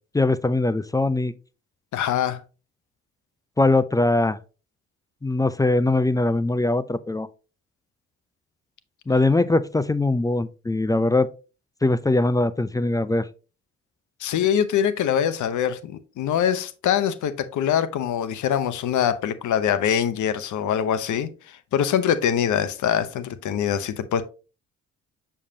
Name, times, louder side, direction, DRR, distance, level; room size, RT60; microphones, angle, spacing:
voice 1, 0.1-1.3 3.6-4.4 5.2-7.3 9.1-11.3 11.8-13.3, left 2 dB, 10° left, 0.4 m, -21 dB
voice 2, 1.9-2.4 14.2-24.2, left 9 dB, 65° left, 0.8 m, -24 dB
6.5 x 5.5 x 2.8 m
supercardioid pair, 55°, 32 cm